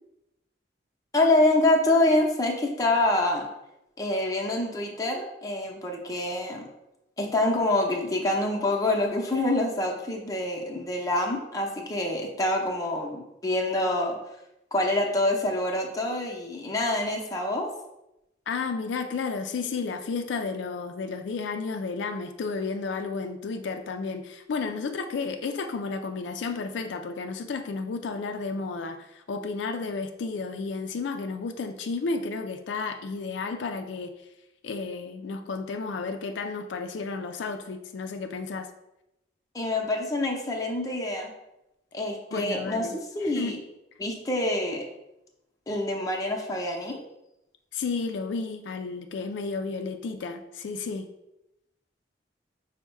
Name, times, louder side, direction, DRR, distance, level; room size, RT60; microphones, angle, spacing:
voice 1, 1.1-3.5 4.0-6.7 7.2-14.2 14.7-17.7 39.5-41.3 41.9-42.9 43.1-43.6 44.0-44.8 45.7-47.0, left 1 dB, 20° left, 0 dB, 0.6 m, -26 dB
voice 2, 18.5-34.1 34.6-38.7 42.3-43.6 47.7-51.1, left 4 dB, 85° left, 6 dB, 0.4 m, -32 dB
5.4 x 2.1 x 4.5 m, 0.90 s
head